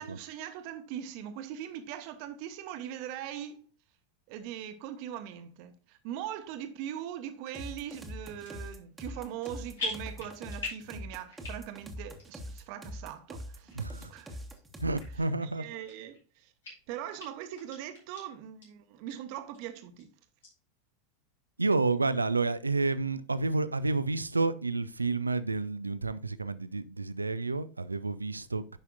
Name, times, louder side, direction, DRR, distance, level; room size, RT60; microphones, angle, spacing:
voice 1, 0.0-3.6 4.3-13.8 14.1-14.4 15.4-16.5 16.9-20.1, right 10 dB, 50° right, 1.1 m, -41 dB
sound 1, 7.4-7.6 8.2-8.7 9.0-9.5 9.8-10.9 11.3-11.8 12.2-12.3 12.9-13.0 13.7-13.8 14.5-14.6 15.0-15.1 15.6-16.2 16.6-16.7 17.2-17.3 17.6-18.2 18.6-18.7 19.1-19.2 19.5-20.0 20.4-20.5, left 3 dB, 70° left, 4.4 m, -40 dB
sound 2, 7.5-15.2, equal, 10° right, 1.2 m, -43 dB
voice 2, 13.7-14.1 14.8-15.8 21.6-28.8, right 3 dB, 85° right, 0.4 m, -30 dB
10.5 x 5.6 x 2.5 m
figure-of-eight pair, 85°, 0 cm